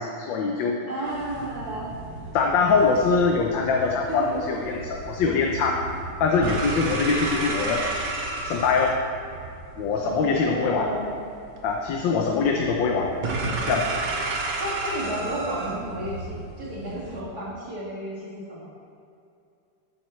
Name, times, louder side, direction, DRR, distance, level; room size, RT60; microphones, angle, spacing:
voice 1, 0.0-0.8 2.3-5.8 6.2-7.8 8.4-9.0 9.8-10.9 11.6-13.1 13.4-13.9, left 5 dB, 85° left, 1 dB, 1.6 m, -23 dB
voice 2, 0.8-1.9 4.0-4.4 10.0-11.1 12.8-13.0 14.6-18.7, right 1 dB, 55° right, -7 dB, 2.8 m, -32 dB
sound 1, 1.0-17.2, right 2 dB, 85° right, 1.9 m, -33 dB
13.0 x 10.5 x 3.2 m, 2.6 s
omnidirectional pair, 2.0 m